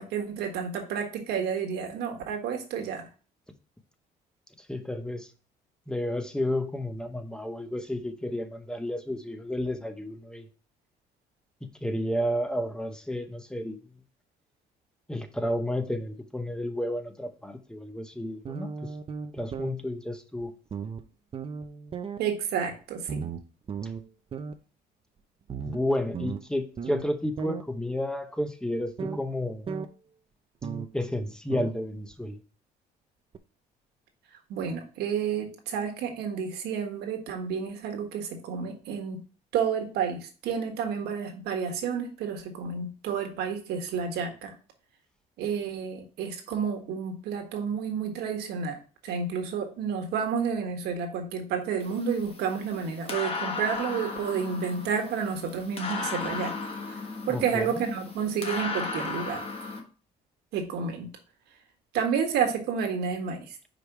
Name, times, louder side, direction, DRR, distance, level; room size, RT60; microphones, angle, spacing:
voice 1, 0.0-3.1 22.2-23.3 34.5-39.2 39.5-44.5 45.4-48.8 49.0-56.5 56.8-59.4 60.5-61.1 61.9-63.6, right 6 dB, 75° right, 1.5 m, -30 dB
voice 2, 4.6-5.3 5.9-10.5 11.6-13.8 15.1-18.9 19.3-20.5 25.6-29.7 30.9-32.4 57.3-57.8, left 1 dB, 5° left, 0.8 m, -31 dB
sound 1, 18.5-19.7 20.4-20.5 20.7-21.0 21.3-22.2 23.1-24.1 24.3-24.5 25.5-27.1 27.4-27.6 29.0-29.2 29.7-29.9 30.6-30.9 31.5-31.8 32.1-32.2 33.3-33.4, right 6 dB, 35° right, 0.6 m, -35 dB
sound 2, 51.8-59.8, left 3 dB, 35° left, 1.4 m, -36 dB
5.1 x 4.9 x 4.6 m
cardioid pair, 110°, 17 cm